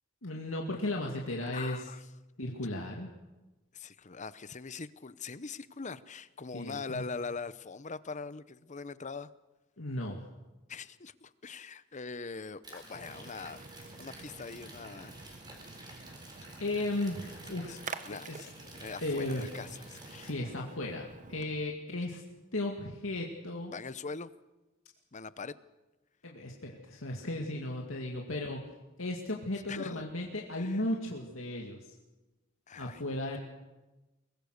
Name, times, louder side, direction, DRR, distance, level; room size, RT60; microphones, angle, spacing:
voice 1, 0.2-1.8 2.4-3.1 6.5-7.0 9.8-10.2 16.6-17.8 18.1-18.4 19.0-19.4 20.2-22.2 22.5-23.7 26.2-28.6 29.0-31.8 32.8-33.4, left 1 dB, 75° left, 0 dB, 2.3 m, -35 dB
voice 2, 1.4-2.0 3.7-9.3 10.7-13.6 14.0-15.2 17.7-20.3 23.7-24.3 25.1-25.6 29.7-30.1 30.6-30.8 32.7-33.4, left 4 dB, 35° left, 15 dB, 0.8 m, -42 dB
sound 1, 12.6-20.3, right 2 dB, 20° right, 4.3 m, -51 dB
Splash splatter, 12.9-21.6, right 4 dB, 35° right, 0.9 m, -48 dB
23.5 x 20.0 x 6.6 m, 1.1 s
head